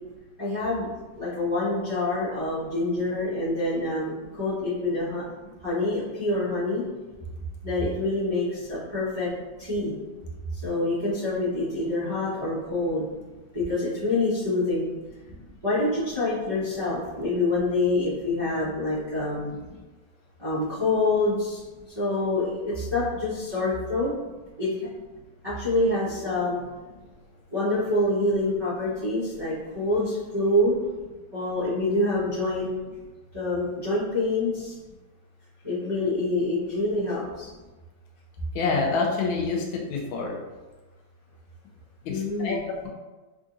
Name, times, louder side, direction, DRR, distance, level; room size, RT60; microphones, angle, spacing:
voice 1, 0.4-0.9 1.2-5.2 5.6-6.8 7.6-9.9 10.6-13.1 13.5-14.9 15.6-19.5 20.4-21.6 21.9-24.1 24.6-24.7 25.4-26.6 27.5-30.8 31.3-32.7 33.3-34.7 35.6-37.5 42.1-42.6, left 2 dB, 25° right, -12 dB, 0.5 m, -26 dB
voice 2, 38.5-40.4 42.1-42.9, left 4 dB, 85° left, 0 dB, 1.4 m, -27 dB
3.7 x 2.4 x 2.5 m, 1.2 s
omnidirectional pair, 2.1 m